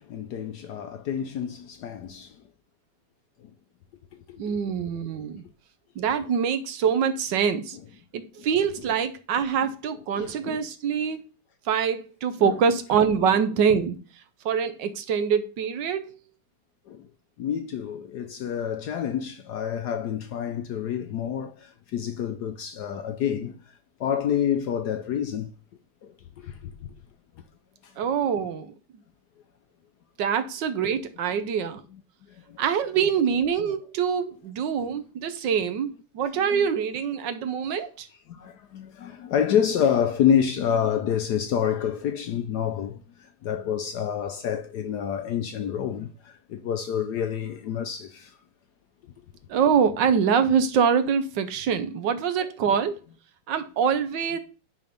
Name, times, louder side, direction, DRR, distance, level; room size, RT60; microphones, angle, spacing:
voice 1, 0.1-2.3 4.3-4.4 10.2-10.6 12.4-12.6 16.9-17.0 17.4-21.6 21.9-23.5 24.0-25.5 26.4-26.5 36.5-36.6 38.4-43.0 43.4-46.1 46.5-48.3, left 8 dB, 70° left, 1.0 m, -27 dB
voice 2, 4.4-5.4 6.0-7.8 8.1-11.2 11.6-14.0 14.4-16.1 28.0-28.7 30.2-31.8 32.6-38.1 49.5-53.0 53.5-54.4, right 7 dB, 70° right, 1.3 m, -24 dB
9.9 x 3.6 x 5.2 m
omnidirectional pair, 2.2 m